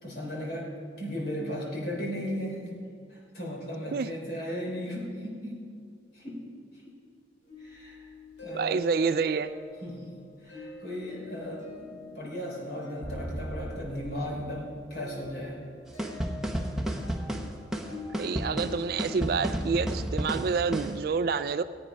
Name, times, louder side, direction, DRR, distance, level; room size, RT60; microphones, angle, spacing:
voice 1, 0.0-0.7 1.0-2.7 3.1-5.6 6.1-6.4 6.7-6.9 7.6-8.1 8.4-8.9 9.8-10.1 10.4-15.6, equal, 55° left, -2 dB, 3.6 m, -36 dB
sound 1, 7.5-19.7, left 2 dB, 80° left, 3.7 m, -46 dB
voice 2, 8.5-9.5 18.2-21.6, right 5 dB, 55° right, 11 dB, 0.3 m, -28 dB
sound 2, 13.0-15.7, right 1 dB, 15° left, 3.2 m, -40 dB
sound 3, 16.0-21.0, equal, 5° right, 0.9 m, -32 dB
18.0 x 8.8 x 5.2 m, 2.2 s
head